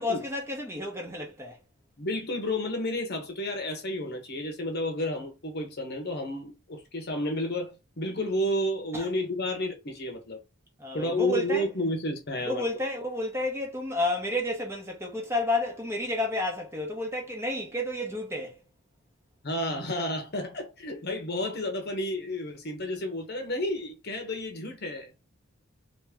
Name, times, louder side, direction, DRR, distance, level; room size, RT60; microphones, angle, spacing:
voice 1, 0.0-1.6 8.9-9.1 10.8-11.7 12.4-18.6, left 1 dB, 15° right, 1.0 m, -31 dB
voice 2, 2.0-10.4 10.9-12.7 19.4-25.1, left 1 dB, 55° left, 1.0 m, -31 dB
2.9 x 2.8 x 3.5 m
head